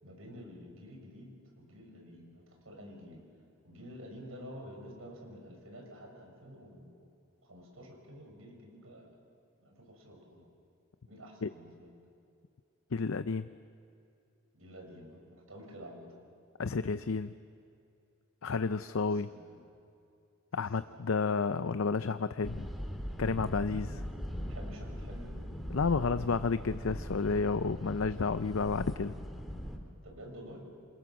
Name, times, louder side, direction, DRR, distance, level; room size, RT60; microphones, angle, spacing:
voice 1, 0.0-3.2 3.6-7.1 7.4-9.2 9.6-10.5 11.1-11.9 14.5-16.1 19.0-19.7 20.8-21.1 24.5-25.5 30.0-30.7, equal, 85° right, 1 dB, 6.6 m, -50 dB
voice 2, 12.9-13.5 16.6-17.3 18.4-19.3 20.5-22.7 23.2-24.0 25.7-29.2, left 4 dB, 80° left, 12 dB, 0.6 m, -31 dB
sound 1, 22.4-29.8, equal, ahead, 2.6 m, -40 dB
28.0 x 27.5 x 7.2 m, 2.5 s
head